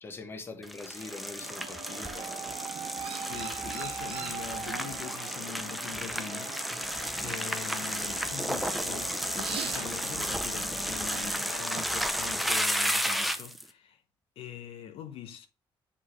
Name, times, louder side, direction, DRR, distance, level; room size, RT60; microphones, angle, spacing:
voice 1, 0.0-2.6, left 3 dB, 25° left, 1.1 m, -43 dB
sound 1, 0.6-13.6, equal, ahead, 0.5 m, -33 dB
sound 2, 1.0-12.8, right 4 dB, 85° right, 1.4 m, -44 dB
Chirp tweet, 1.4-11.8, right 9 dB, 65° right, 0.7 m, -44 dB
voice 2, 3.2-6.9 7.2-14.0 14.4-15.5, left 9 dB, 85° left, 0.8 m, -43 dB
7.5 x 4.1 x 3.1 m
cardioid pair, 145°, 10 cm